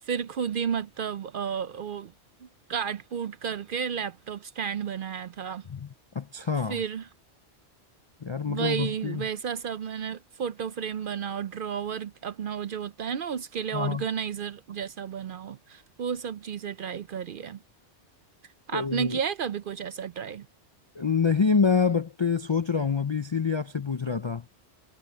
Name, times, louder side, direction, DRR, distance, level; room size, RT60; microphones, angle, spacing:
voice 1, 0.0-2.1 2.4-5.6 6.7-7.1 8.5-17.6 18.7-20.5, right 7 dB, 60° right, 0.6 m, -32 dB
voice 2, 6.1-6.8 8.2-9.3 13.7-14.0 18.7-19.2 21.0-24.4, left 5 dB, 40° left, 0.4 m, -26 dB
omnidirectional pair, 1.2 m